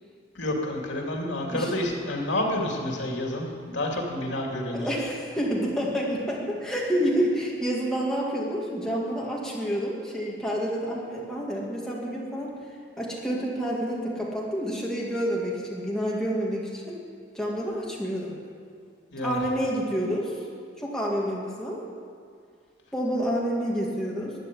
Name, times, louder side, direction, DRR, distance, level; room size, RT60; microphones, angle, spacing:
voice 1, 0.3-4.9 19.1-19.4, left 1 dB, 80° left, 0 dB, 2.7 m, -29 dB
voice 2, 4.7-12.5 13.0-17.0 17.3-18.4 19.2-20.4 20.8-21.8 22.9-24.3, equal, 5° left, -4 dB, 2.1 m, -28 dB
12.5 x 9.4 x 9.9 m, 2.3 s
head